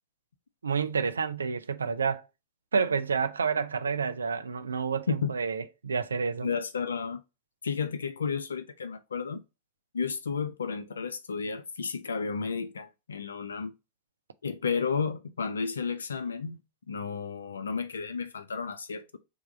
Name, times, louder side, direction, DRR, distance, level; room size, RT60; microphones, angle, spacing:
voice 1, 0.6-2.2 2.7-6.5, right 5 dB, 85° right, 0.4 m, -29 dB
voice 2, 6.4-7.2 7.6-9.4 9.9-13.7 14.4-16.6 16.9-19.2, left 5 dB, 80° left, 0.3 m, -32 dB
3.4 x 2.3 x 4.4 m
figure-of-eight pair, 90°, 0 cm